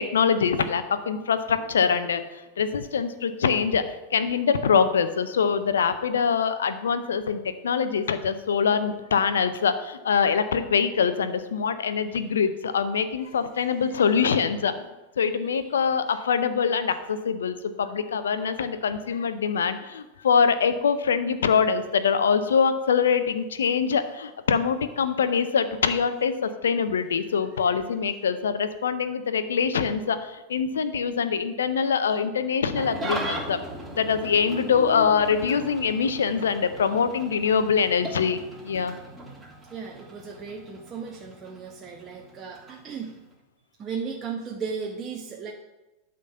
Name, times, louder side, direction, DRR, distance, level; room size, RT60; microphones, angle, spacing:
voice 1, 0.0-2.2 2.6-14.9 15.2-33.6 34.0-39.0, left 6 dB, 75° left, 11 dB, 0.7 m, -24 dB
voice 2, 13.6-14.0 15.5-15.7 27.6-27.7 39.7-43.2 43.8-45.5, right 5 dB, 30° right, 0 dB, 1.0 m, -36 dB
Engine starting / Idling, 32.7-43.3, right 1 dB, 10° right, 3.1 m, -38 dB
11.5 x 3.9 x 5.6 m, 1.1 s
figure-of-eight pair, 90°, 0 cm